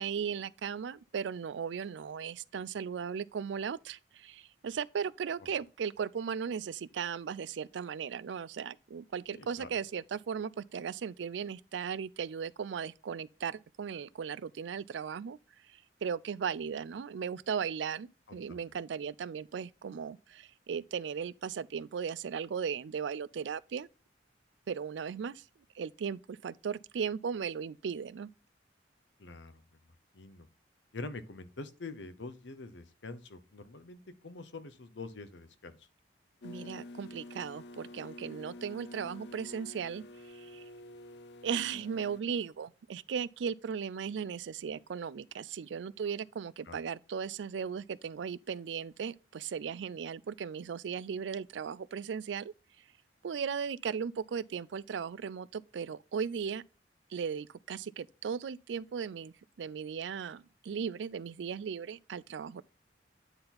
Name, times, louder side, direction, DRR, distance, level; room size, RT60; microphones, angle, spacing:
voice 1, 0.0-15.4 15.7-23.9 24.7-25.4 25.7-28.3 36.4-40.7 41.4-52.5 53.2-56.6 57.1-62.6, right 7 dB, 85° right, 0.4 m, -37 dB
voice 2, 9.3-9.7 18.5-18.6 29.2-29.6 30.1-30.5 30.9-35.8 46.7-46.8, left 3 dB, 90° left, 0.9 m, -45 dB
sound 1, 36.4-42.2, left 1 dB, 65° left, 0.5 m, -48 dB
9.6 x 3.9 x 4.2 m
head